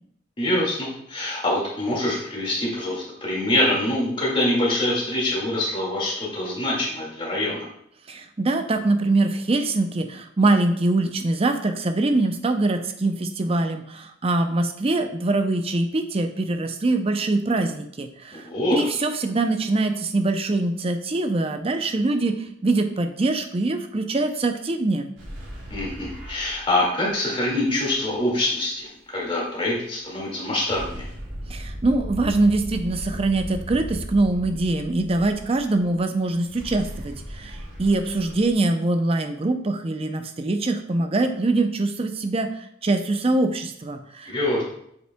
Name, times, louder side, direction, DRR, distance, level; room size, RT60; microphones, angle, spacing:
voice 1, 0.4-7.7 18.3-18.8 25.7-31.0 44.3-44.6, left 1 dB, 25° left, -4 dB, 2.0 m, -25 dB
voice 2, 8.1-25.1 31.5-42.5 42.8-44.3, right 2 dB, 30° right, 7 dB, 0.5 m, -23 dB
sound 1, 25.2-28.1 30.7-36.0 36.3-38.5, equal, 80° right, 2.3 m, -37 dB
8.0 x 5.3 x 2.2 m, 0.72 s
head